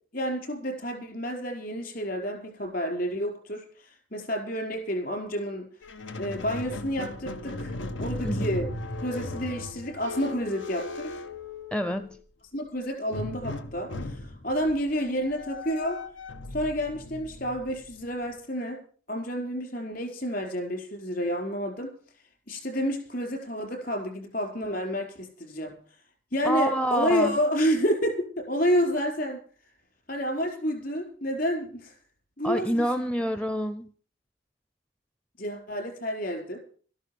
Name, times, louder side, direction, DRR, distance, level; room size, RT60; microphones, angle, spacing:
voice 1, 0.1-5.7 6.2-8.7 9.0-11.1 12.5-16.0 16.5-18.8 19.1-21.9 22.5-25.7 26.3-29.4 30.1-32.0 32.4-32.9 35.4-36.6, equal, 50° left, 5.0 m, -29 dB
Squeak, 5.8-12.2 13.1-18.3, left 2 dB, 90° left, 1.5 m, -37 dB
voice 2, 11.7-12.1 26.4-27.4 32.4-33.9, equal, 5° left, 0.6 m, -27 dB
13.5 x 12.0 x 7.0 m
head